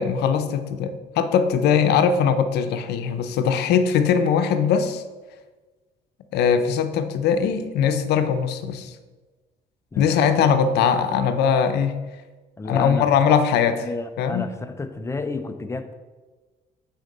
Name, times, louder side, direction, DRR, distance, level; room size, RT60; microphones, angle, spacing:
voice 1, 0.0-5.0 6.3-8.9 10.0-12.0 12.6-13.9 14.2-14.5, left 7 dB, 75° left, 10 dB, 0.7 m, -21 dB
voice 2, 9.9-10.3 12.6-13.1 13.8-15.9, left 3 dB, 15° left, 9 dB, 0.6 m, -31 dB
8.1 x 4.3 x 5.3 m, 1.3 s
cardioid pair, 110°, 17 cm